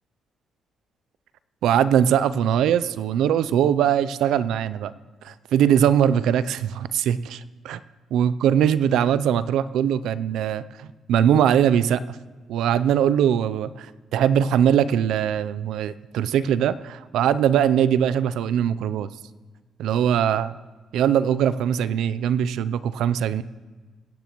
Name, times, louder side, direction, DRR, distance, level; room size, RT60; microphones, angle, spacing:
voice 1, 1.6-4.9 5.2-7.8 8.1-12.2 12.5-19.1 19.8-20.6 20.9-23.4, right 9 dB, 80° right, 16 dB, 0.4 m, -21 dB
22.0 x 9.5 x 3.0 m, 1.3 s
cardioid pair, 90°, 0 cm